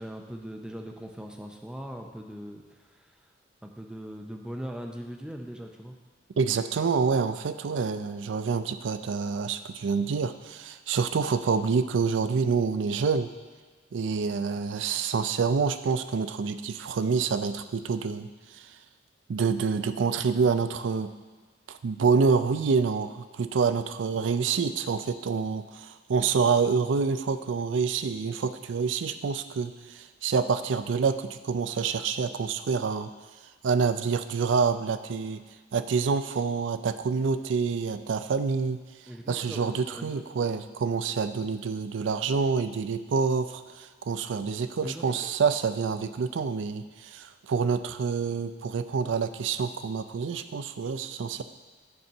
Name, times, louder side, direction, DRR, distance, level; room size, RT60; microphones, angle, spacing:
voice 1, 0.0-2.6 3.0-3.1 3.6-6.0 39.1-40.5 44.8-45.3, equal, 5° right, 2 dB, 0.6 m, -40 dB
voice 2, 6.4-13.3 13.9-18.3 19.3-21.1 21.7-33.1 33.6-35.4 35.7-38.8 39.3-51.4, right 5 dB, 75° right, 11 dB, 0.4 m, -27 dB
6.8 x 4.4 x 6.5 m, 1.4 s
head